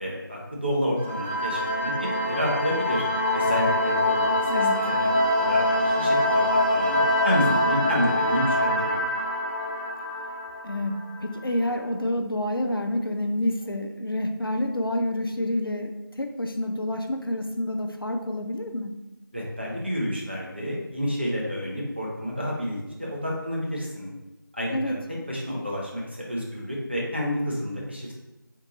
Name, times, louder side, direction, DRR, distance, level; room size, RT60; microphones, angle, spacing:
voice 1, 0.0-3.0 3.3-5.1 5.3-7.0 7.2-9.0 19.3-24.1 24.5-25.0 25.3-28.1, equal, 30° right, -4 dB, 0.7 m, -29 dB
sound 1, 1.0-11.4, left 1 dB, 30° left, 0.6 m, -24 dB
voice 2, 4.5-4.8 10.6-18.9 24.7-25.0, left 1 dB, 80° left, 5 dB, 0.6 m, -28 dB
3.8 x 2.7 x 3.8 m, 1.0 s
figure-of-eight pair, 175°, 12 cm